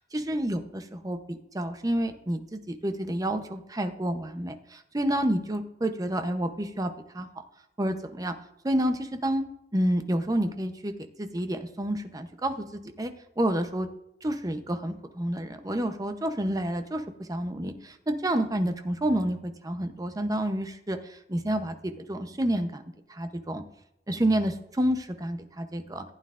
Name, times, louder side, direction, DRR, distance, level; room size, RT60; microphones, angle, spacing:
voice 1, 0.1-1.2 1.5-7.3 7.8-8.3 8.6-9.4 9.7-10.9 11.2-13.9 14.2-22.8 23.1-23.6 24.1-26.0, right 1 dB, 20° right, 7 dB, 0.7 m, -29 dB
15.0 x 8.9 x 2.5 m, 0.80 s
head